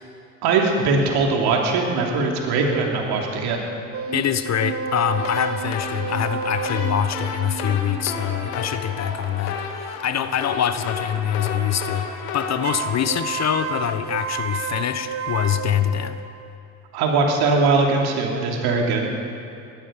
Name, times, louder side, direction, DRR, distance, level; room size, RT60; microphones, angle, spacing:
voice 1, 0.4-3.6 16.9-19.1, right 3 dB, 65° right, 0 dB, 2.9 m, -21 dB
sound 1, 3.9-9.3 12.6-16.6, right 6 dB, 35° right, 0.9 m, -31 dB
voice 2, 4.1-16.2, left 9 dB, 40° left, 11 dB, 1.0 m, -24 dB
sound 2, 5.0-14.1, left 5 dB, 80° left, 2.1 m, -33 dB
18.5 x 13.5 x 5.2 m, 2.7 s
hypercardioid pair, 75°, 42 cm